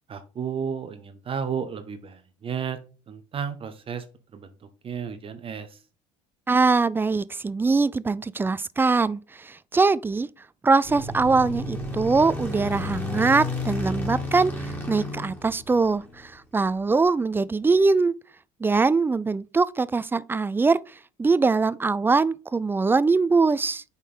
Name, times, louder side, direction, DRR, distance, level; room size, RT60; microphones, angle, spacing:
voice 1, 0.1-2.8 3.1-4.0 4.3-4.6 4.8-5.8, right 7 dB, 35° right, 0.9 m, -32 dB
voice 2, 6.5-10.3 10.6-18.1 18.6-20.8 21.2-23.8, right 4 dB, 15° right, 0.3 m, -22 dB
sound 1, 10.8-16.3, left 2 dB, 15° left, 2.3 m, -32 dB
5.5 x 4.1 x 5.0 m
supercardioid pair, 90°, 16 cm